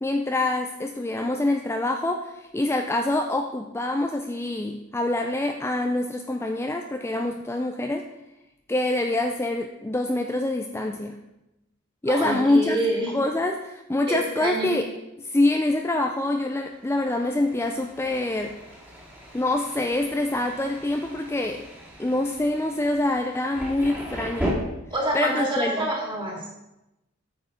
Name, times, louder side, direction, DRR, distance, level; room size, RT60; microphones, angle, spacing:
voice 1, 0.0-8.0 8.7-11.2 12.0-12.8 13.1-14.8 15.2-18.5 19.3-21.6 22.0-24.6 25.1-25.9, left 2 dB, 15° left, 4 dB, 0.5 m, -25 dB
voice 2, 12.1-13.1 14.1-14.7 24.9-26.4, right 1 dB, 25° right, -2 dB, 2.8 m, -27 dB
Thunder, 16.4-24.5, right 1 dB, 5° right, 2.2 m, -38 dB
8.9 x 6.5 x 5.2 m, 0.92 s
head